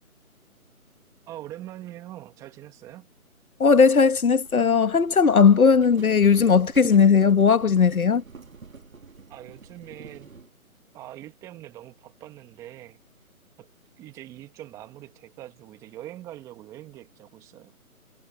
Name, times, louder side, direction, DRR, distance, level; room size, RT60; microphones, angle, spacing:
voice 1, 1.3-3.1 9.3-10.3 10.9-13.0 13.6-13.7 14.0-17.7, right 14 dB, 5° right, 1.9 m, -43 dB
voice 2, 3.6-8.2, left 5 dB, 75° left, 1.3 m, -18 dB
Livestock farm animals working animals, 3.8-10.5, right 5 dB, 65° right, 2.6 m, -45 dB
figure-of-eight pair, 160°, 44 cm